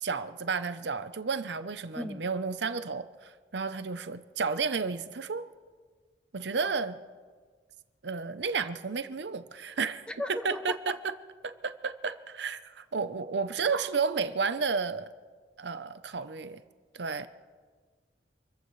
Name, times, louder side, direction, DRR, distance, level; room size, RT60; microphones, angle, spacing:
voice 1, 0.0-5.5 6.3-7.0 8.0-10.0 10.4-11.1 11.6-15.1 15.6-16.6 16.9-17.3, right 5 dB, 70° right, 0.8 m, -32 dB
voice 2, 10.1-10.9, left 1 dB, 5° left, 0.7 m, -36 dB
27.0 x 14.5 x 3.2 m
head